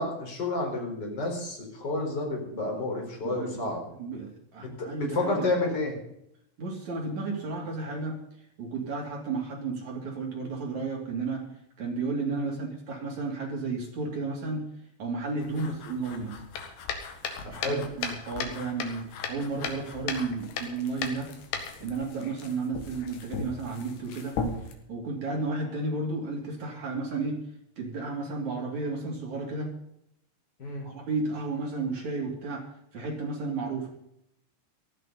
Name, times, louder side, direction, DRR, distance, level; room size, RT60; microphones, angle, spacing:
voice 1, 0.0-3.8 4.6-6.0 12.3-12.5 15.5-15.6 17.4-17.8 30.6-30.9, left 2 dB, 20° left, 1 dB, 4.3 m, -30 dB
voice 2, 3.2-5.6 6.6-11.5 11.8-14.6 15.0-16.4 17.5-21.3 21.8-24.4 24.9-27.4 27.8-29.7 30.8-33.9, right 3 dB, 40° right, -1 dB, 3.4 m, -33 dB
sound 1, 15.4-24.7, left 5 dB, 65° left, 3.4 m, -37 dB
17.0 x 14.0 x 4.1 m, 0.75 s
omnidirectional pair, 5.9 m